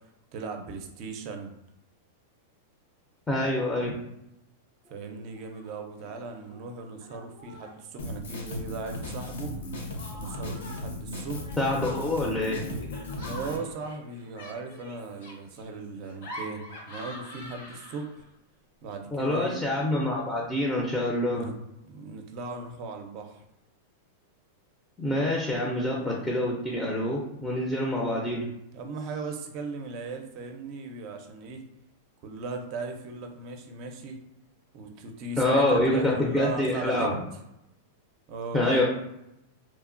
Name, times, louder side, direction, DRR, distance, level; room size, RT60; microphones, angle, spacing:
voice 1, 0.3-1.5 4.9-9.5 10.1-11.6 13.2-18.2 18.8-19.6 21.3-21.5 21.9-23.4 28.7-31.6 32.2-34.2 34.7-37.1 38.3-38.8, right 3 dB, 45° right, 4 dB, 0.4 m, -37 dB
voice 2, 3.3-4.0 11.6-12.7 19.1-21.5 25.0-28.5 35.4-37.1 38.5-38.8, left 1 dB, 10° left, -3 dB, 0.5 m, -26 dB
Laughter, 5.3-5.7 6.0-6.6 7.0-7.8 9.1-10.7 11.3-18.3, left 1 dB, 70° left, 0.9 m, -45 dB
Drum kit, 8.0-13.6, left 1 dB, 90° left, 0.6 m, -36 dB
3.0 x 2.1 x 2.4 m, 0.83 s
supercardioid pair, 135°, 0 cm